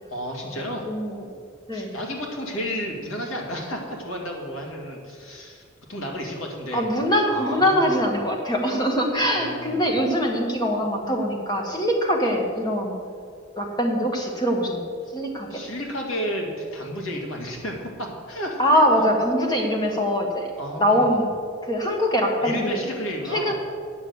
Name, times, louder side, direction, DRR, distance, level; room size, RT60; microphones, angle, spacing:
voice 1, 0.1-0.9 1.7-6.9 7.3-8.0 9.2-9.8 15.5-18.6 20.6-21.2 22.4-23.5, equal, 85° left, 0 dB, 2.2 m, -32 dB
voice 2, 0.8-1.2 1.7-1.9 6.7-13.0 13.5-14.9 15.1-15.6 18.6-20.5 20.8-21.3 21.6-22.8 23.3-23.5, equal, 20° left, 1 dB, 1.5 m, -23 dB
9.5 x 6.4 x 8.0 m, 2.2 s
head